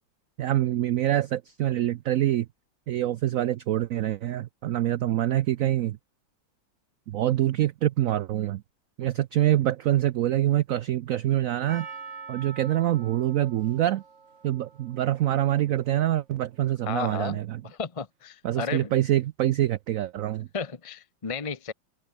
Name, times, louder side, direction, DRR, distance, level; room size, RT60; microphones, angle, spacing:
voice 1, 0.4-2.5 2.9-6.0 7.1-8.6 9.0-11.9 12.3-14.0 14.4-17.6 18.4-20.5, right 13 dB, 85° right, 0.7 m, -25 dB
Percussion, 11.7-16.0 16.7-16.8, right 5 dB, 40° right, 2.1 m, -45 dB
voice 2, 16.9-18.9 20.5-21.7, left 5 dB, 30° left, 0.6 m, -33 dB
omnidirectional pair, 2.0 m